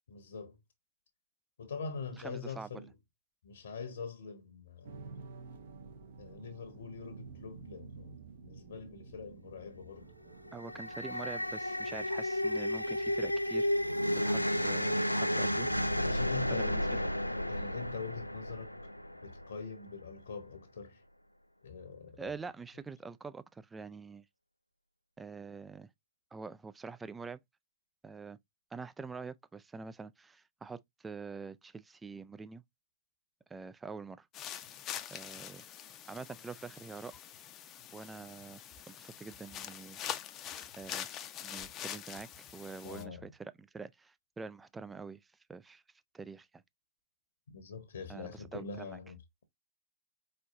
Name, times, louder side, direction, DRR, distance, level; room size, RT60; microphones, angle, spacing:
voice 1, 0.1-0.6 1.6-3.0 3.4-4.9 6.2-8.2 8.4-10.1 13.0-13.1 16.0-17.1 17.5-18.8 19.2-21.0 21.6-22.3 42.8-43.2 47.5-49.4, left 5 dB, 65° left, 1.1 m, -44 dB
voice 2, 2.2-2.7 10.5-13.7 14.2-15.7 16.5-17.0 22.2-24.2 25.2-25.9 26.3-27.4 28.0-28.4 28.7-32.6 33.5-34.3 35.1-35.6 36.1-37.1 37.9-40.0 40.8-41.1 41.4-45.2 45.5-45.8 46.1-46.6 48.1-49.0, right 4 dB, 10° right, 0.4 m, -45 dB
sound 1, 4.8-16.1, right 5 dB, 60° right, 1.2 m, -52 dB
sound 2, 10.5-19.8, left 1 dB, 90° left, 0.4 m, -32 dB
sound 3, 34.3-43.0, left 10 dB, 25° left, 0.7 m, -44 dB
4.6 x 4.3 x 2.5 m
figure-of-eight pair, 105°, 0 cm